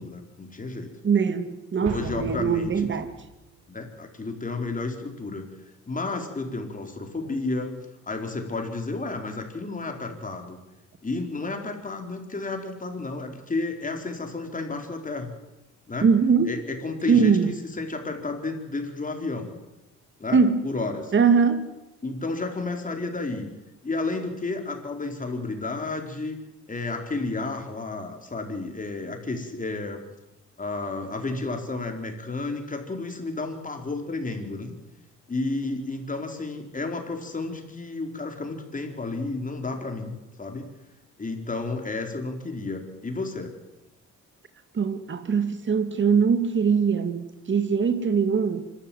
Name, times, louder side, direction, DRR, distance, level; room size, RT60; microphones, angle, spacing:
voice 1, 0.0-0.9 1.7-2.9 3.7-5.5 5.9-7.8 8.0-10.6 11.0-15.3 15.9-16.1 16.5-17.3 17.8-19.5 20.2-21.1 22.0-23.5 23.8-26.4 26.7-30.0 30.6-34.7 35.3-40.7 41.2-43.5, left 3 dB, 25° left, 4.6 m, -32 dB
voice 2, 1.0-3.1 16.0-16.5 17.1-17.5 20.3-21.7 44.7-48.6, right 6 dB, 40° right, 2.3 m, -22 dB
Explosion, 1.8-3.4, right 5 dB, 75° right, 5.2 m, -38 dB
25.5 x 13.5 x 9.4 m
cardioid pair, 90°, 30 cm